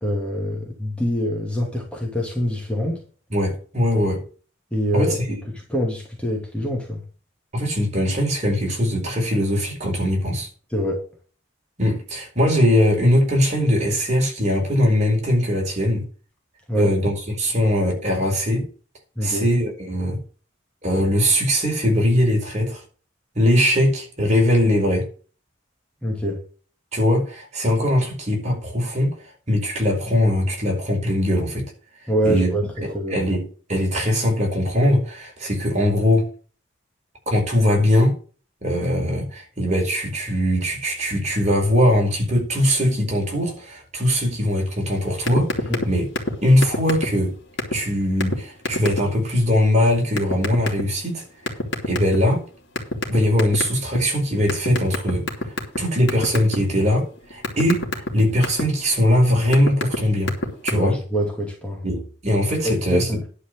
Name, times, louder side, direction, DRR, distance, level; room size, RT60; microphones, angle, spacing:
voice 1, 0.0-3.0 4.7-7.0 10.7-11.0 16.7-16.9 19.2-19.5 26.0-26.4 32.1-32.7 32.9-33.2 45.7-45.9 60.7-61.8 62.6-63.3, equal, 5° left, 2.4 m, -25 dB
voice 2, 3.3-4.2 4.9-5.2 7.5-10.5 11.8-16.0 16.7-18.7 19.2-20.2 20.8-22.8 23.3-25.1 26.9-29.1 29.5-31.7 32.2-36.2 37.3-38.2 38.6-45.5 45.8-46.1 46.4-47.4 47.7-51.2 51.9-52.4 53.1-55.2 55.8-57.9 58.1-60.3 60.6-61.0 61.8-63.1, left 1 dB, 35° right, 4.6 m, -21 dB
sound 1, 45.3-45.9 46.2-46.3 46.6-47.3 47.6-47.8 48.2-48.3 48.7-49.0 50.2-50.8 51.5-52.3 52.8-54.0 54.5-55.8 56.1-56.6 57.0-58.6 59.2-60.0 60.2-60.7, left 1 dB, 60° left, 3.1 m, -24 dB
11.0 x 5.0 x 8.0 m
head